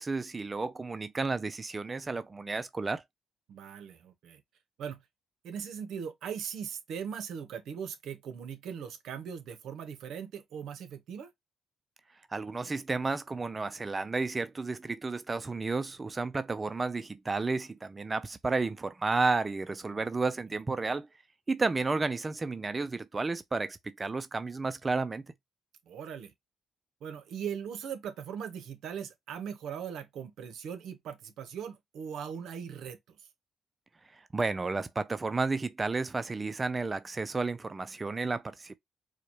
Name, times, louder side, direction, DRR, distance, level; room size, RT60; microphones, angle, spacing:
voice 1, 0.0-3.0 12.3-21.1 21.5-25.2 34.3-38.8, right 3 dB, 25° right, 0.4 m, -32 dB
voice 2, 3.5-4.4 4.8-5.0 5.4-11.3 25.9-26.3 27.0-33.2, right 7 dB, 75° right, 0.8 m, -39 dB
4.8 x 2.2 x 2.8 m
cardioid pair, 90°, 0 cm